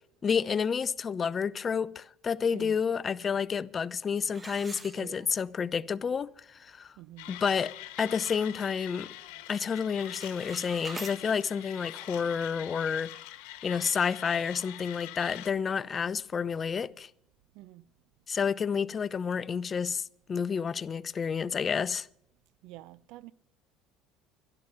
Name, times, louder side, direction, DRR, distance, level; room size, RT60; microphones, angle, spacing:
voice 1, 0.2-6.9 7.3-9.1 9.5-13.1 13.6-17.1 18.3-22.1, left 6 dB, 35° left, 0.5 m, -30 dB
sound 1, 4.3-5.6 6.0-6.1 6.7-6.8 7.2-7.5 7.9-9.0 9.3-9.6 9.9-11.2, right 2 dB, 20° right, 1.5 m, -45 dB
voice 2, 4.9-5.3 7.0-7.3 17.5-17.9 22.6-23.3, right 16 dB, 70° right, 0.5 m, -47 dB
Mechanisms, 7.2-15.5, left 15 dB, 80° left, 1.3 m, -44 dB
12.0 x 11.5 x 5.8 m
supercardioid pair, 100°, 0 cm